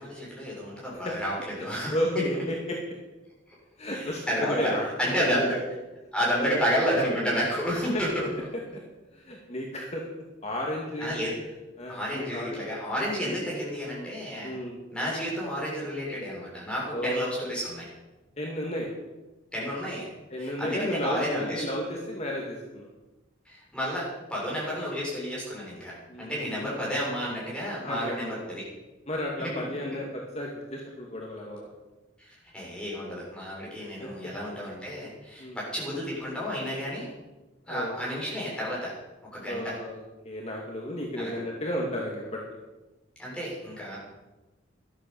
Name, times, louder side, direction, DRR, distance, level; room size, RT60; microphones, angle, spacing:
voice 1, 0.0-2.0 2.3-2.4 3.9-4.7 5.0-5.6 6.1-8.3 11.0-11.3 11.9-14.6 14.9-17.8 19.5-20.1 20.4-21.7 23.5-24.0 24.3-28.6 29.4-29.6 32.2-37.1 37.7-38.9 39.3-39.7 41.2-41.4 43.2-44.0, equal, 5° left, -6 dB, 7.3 m, -31 dB
voice 2, 1.9-2.8 3.8-4.9 5.2-5.6 6.4-6.6 6.9-7.0 7.9-8.0 9.1-10.0 10.4-11.1 11.8-12.6 13.2-13.4 14.4-14.8 16.9-17.3 18.4-18.9 20.3-22.9 26.1-26.7 27.8-28.4 29.1-31.7 34.0-34.1 35.4-35.6 37.7-37.9 39.5-42.4, left 1 dB, 35° left, -1 dB, 2.2 m, -33 dB
13.5 x 12.5 x 7.1 m, 1.1 s
head